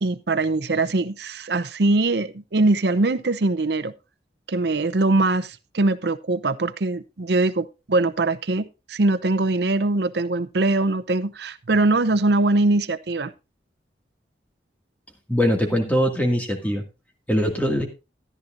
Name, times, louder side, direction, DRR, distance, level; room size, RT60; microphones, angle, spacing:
voice 1, 0.0-3.9 4.5-13.3, right 2 dB, 65° right, 0.7 m, -22 dB
voice 2, 15.3-16.8 17.3-17.9, equal, 10° left, 2.1 m, -22 dB
13.5 x 11.5 x 2.6 m
head